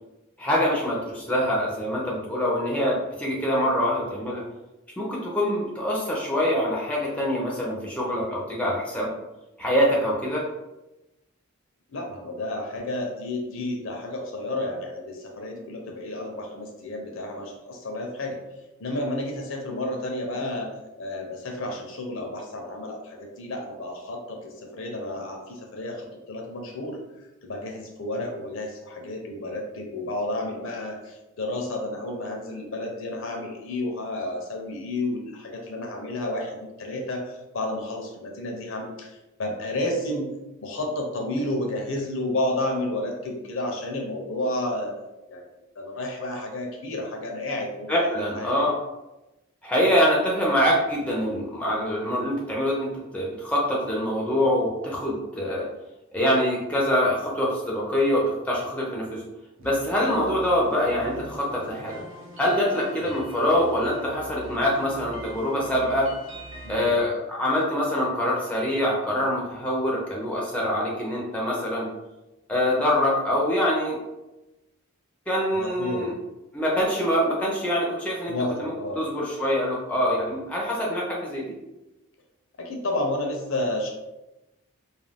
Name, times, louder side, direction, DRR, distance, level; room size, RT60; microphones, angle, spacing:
voice 1, 0.4-4.4 5.0-9.1 9.6-10.4 47.9-48.7 49.6-55.7 56.1-59.2 59.6-62.0 62.4-66.1 66.7-71.9 72.5-74.0 75.3-76.1 76.5-78.3 78.6-81.6, equal, 5° left, -4 dB, 0.4 m, -24 dB
voice 2, 11.9-18.4 18.8-20.7 21.0-27.0 27.4-40.3 40.6-45.0 45.3-45.4 45.8-48.5 66.6-66.9 75.5-76.1 78.3-79.0 82.6-83.9, left 1 dB, 60° left, 1 dB, 0.5 m, -31 dB
sound 1, 59.6-67.0, right 1 dB, 60° right, 0.6 m, -42 dB
2.4 x 2.2 x 3.3 m, 0.99 s
head